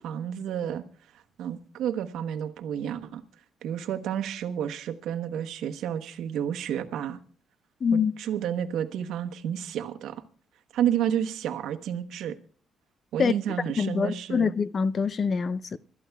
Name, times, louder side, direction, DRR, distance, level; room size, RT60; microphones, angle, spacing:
voice 1, 0.0-0.8 1.1-3.2 3.6-7.2 7.9-10.2 10.7-12.4 13.1-14.5, right 9 dB, 85° right, 1.1 m, -30 dB
voice 2, 7.8-8.1 13.2-13.3 13.8-15.8, left 6 dB, 45° left, 0.5 m, -25 dB
26.0 x 13.5 x 2.3 m
cardioid pair, 90°, 0 cm